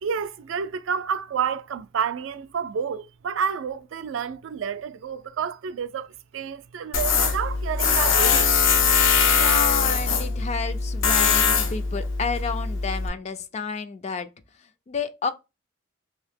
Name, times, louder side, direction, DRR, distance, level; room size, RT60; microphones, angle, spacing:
voice 1, 0.0-6.1 6.3-8.5, right 7 dB, 75° right, 0.4 m, -29 dB
Tools, 6.9-13.1, left 5 dB, 80° left, 0.6 m, -21 dB
voice 2, 9.0-14.3 14.9-15.3, left 5 dB, 35° left, 0.3 m, -31 dB
2.8 x 2.7 x 3.4 m
head